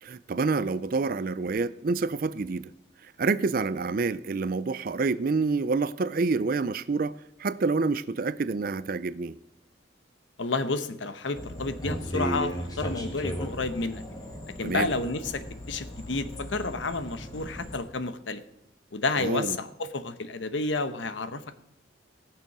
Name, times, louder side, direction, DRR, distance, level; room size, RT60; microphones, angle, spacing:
voice 1, 0.0-2.7 3.2-9.4 14.6-14.9 19.2-19.6, right 4 dB, 50° right, 0.4 m, -27 dB
voice 2, 10.4-14.0 14.6-18.4 18.9-21.5, left 3 dB, 75° left, 1.0 m, -30 dB
sound 1, 11.3-17.8, equal, 20° left, 1.6 m, -36 dB
18.5 x 6.8 x 6.1 m
head